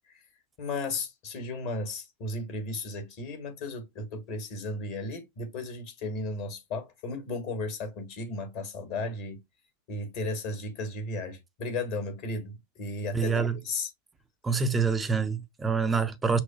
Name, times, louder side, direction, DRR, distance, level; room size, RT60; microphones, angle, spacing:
voice 1, 0.6-9.4 9.9-13.9, left 2 dB, 45° left, 1.7 m, -35 dB
voice 2, 13.1-13.6 14.4-16.4, right 5 dB, 15° right, 0.6 m, -26 dB
5.9 x 2.2 x 2.6 m
figure-of-eight pair, 90°, 0 cm